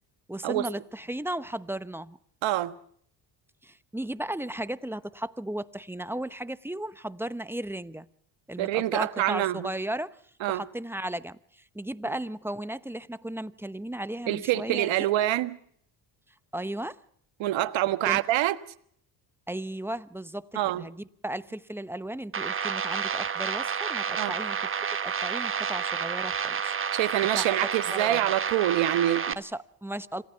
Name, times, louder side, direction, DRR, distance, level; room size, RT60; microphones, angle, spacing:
voice 1, 0.3-2.2 3.6-8.1 8.5-10.2 10.5-14.9 16.5-17.0 18.1-18.2 19.5-20.5 20.7-24.7 25.0-26.7 27.3-27.6 27.9-28.3 29.4-30.2, right 1 dB, 5° right, 0.9 m, -35 dB
voice 2, 2.4-2.7 8.6-9.7 10.4-10.6 14.3-15.6 17.4-18.5 20.5-20.8 24.2-24.3 26.9-29.4, right 14 dB, 70° right, 1.5 m, -26 dB
sound 1, 22.3-29.3, right 6 dB, 25° right, 1.2 m, -30 dB
27.0 x 18.5 x 5.8 m
cardioid pair, 90°, 47 cm